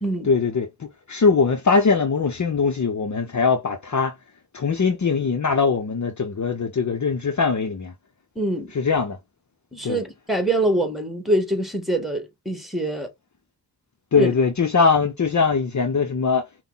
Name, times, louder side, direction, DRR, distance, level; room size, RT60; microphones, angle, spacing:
voice 1, 0.2-4.1 4.5-7.9 8.7-9.2 9.8-10.0 14.1-16.4, left 5 dB, 45° left, 0.9 m, -21 dB
voice 2, 8.4-8.7 9.7-13.1 14.2-14.3, right 1 dB, ahead, 1.9 m, -24 dB
5.6 x 2.3 x 4.1 m
cardioid pair, 60°, 40 cm